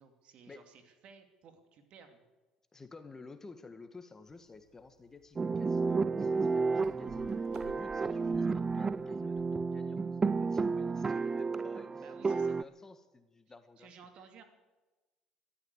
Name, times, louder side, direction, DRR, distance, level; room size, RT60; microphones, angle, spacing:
voice 1, 0.0-2.2 12.0-12.6 13.5-14.4, right 6 dB, 60° right, 6 dB, 2.5 m, -56 dB
voice 2, 2.7-14.0, left 3 dB, 25° left, 9 dB, 1.8 m, -53 dB
sound 1, 4.3-9.5, right 4 dB, 85° right, 2.3 m, -57 dB
sound 2, 5.4-12.6, right 4 dB, 25° right, 0.5 m, -32 dB
13.0 x 12.5 x 8.2 m, 1.1 s
supercardioid pair, 80°, 2 cm